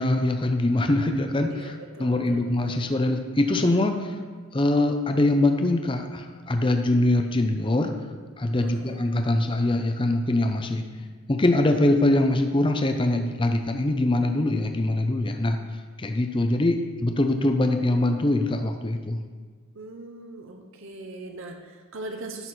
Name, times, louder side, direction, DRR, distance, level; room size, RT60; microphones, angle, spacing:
voice 1, 0.0-4.2 4.5-7.9 8.4-10.8 11.3-15.6 16.0-19.2, left 1 dB, 25° left, 5 dB, 0.5 m, -23 dB
voice 2, 1.5-2.8 8.6-9.0 19.7-22.5, right 2 dB, 60° right, 3 dB, 0.8 m, -40 dB
11.0 x 4.2 x 6.2 m, 1.5 s
head